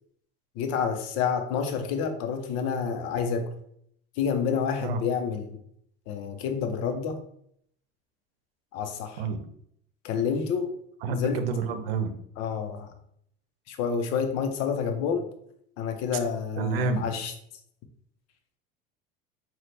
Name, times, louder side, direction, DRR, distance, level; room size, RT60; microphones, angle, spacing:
voice 1, 0.6-3.5 4.2-5.6 6.1-7.2 8.7-9.2 10.0-10.7 11.1-11.4 12.4-12.9 13.7-15.3 15.8-17.3, left 6 dB, 60° left, 7 dB, 0.8 m, -28 dB
voice 2, 11.0-12.1 16.6-17.1, right 4 dB, 90° right, 9 dB, 0.7 m, -28 dB
5.7 x 2.4 x 3.3 m, 0.69 s
supercardioid pair, 95°, 29 cm